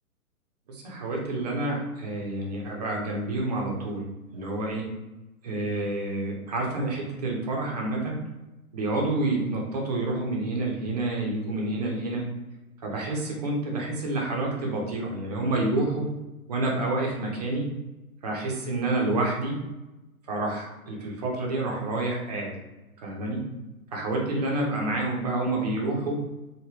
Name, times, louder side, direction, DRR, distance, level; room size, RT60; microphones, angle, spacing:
voice 1, 0.7-4.1 4.3-4.8 5.4-8.2 8.7-12.2 12.8-16.1 16.5-17.7 18.2-19.6 20.2-22.6 23.0-23.4 23.9-26.2, right 2 dB, 30° right, -1 dB, 0.6 m, -28 dB
2.9 x 2.7 x 2.3 m, 1.0 s
figure-of-eight pair, 120°, 44 cm